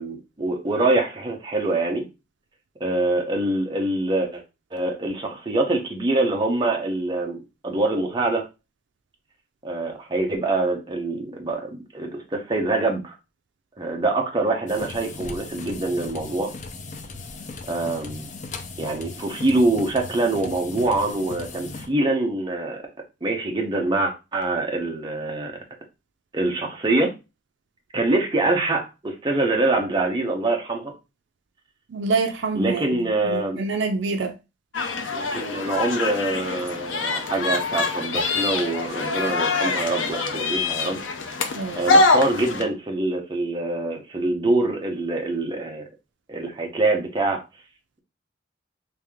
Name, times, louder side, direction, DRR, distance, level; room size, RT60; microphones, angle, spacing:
voice 1, 0.0-2.1 2.8-4.4 4.7-8.5 9.6-13.1 13.8-16.5 17.7-18.3 18.8-22.8 23.2-25.5 26.3-27.1 27.9-30.9 32.5-33.6 35.1-41.0 41.8-45.9 46.3-47.4, right 2 dB, 25° right, 0.8 m, -24 dB
sound 1, 14.7-21.9, left 3 dB, 40° left, 0.5 m, -37 dB
voice 2, 31.9-34.3 41.5-41.8, right 3 dB, 65° right, 0.5 m, -26 dB
sound 2, 34.7-42.6, left 3 dB, 80° left, 0.6 m, -24 dB
3.3 x 2.7 x 3.4 m
head